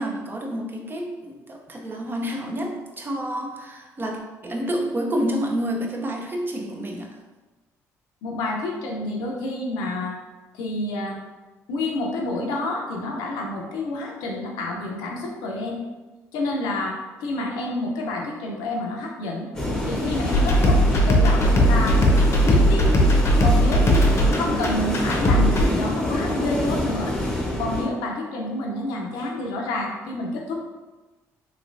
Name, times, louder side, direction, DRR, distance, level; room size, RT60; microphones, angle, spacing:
voice 1, 0.0-7.1, equal, 30° right, 2 dB, 0.6 m, -29 dB
voice 2, 8.2-10.2 10.5-11.2 11.7-15.8 16.3-19.5 19.8-22.0 22.4-22.9 23.4-27.1 27.6-30.6, left 2 dB, 85° left, 0 dB, 0.6 m, -28 dB
sound 1, 19.5-27.8, left 1 dB, 10° left, 0.8 m, -26 dB
sound 2, 20.3-25.6, equal, 40° left, 0.7 m, -18 dB
3.1 x 2.9 x 2.6 m, 1.2 s
supercardioid pair, 70°, 7 cm